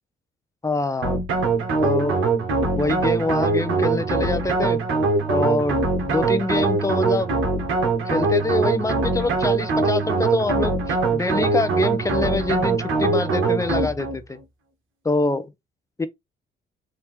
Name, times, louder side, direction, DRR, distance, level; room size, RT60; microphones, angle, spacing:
voice 1, 0.6-1.2 1.8-2.2 2.7-4.8 5.3-7.3 8.0-14.4 15.0-15.5 16.0-16.1, left 3 dB, 15° left, 0.8 m, -25 dB
sound 1, 1.0-14.2, right 3 dB, 80° right, 1.8 m, -22 dB
4.4 x 3.2 x 3.6 m
cardioid pair, 90°, 20 cm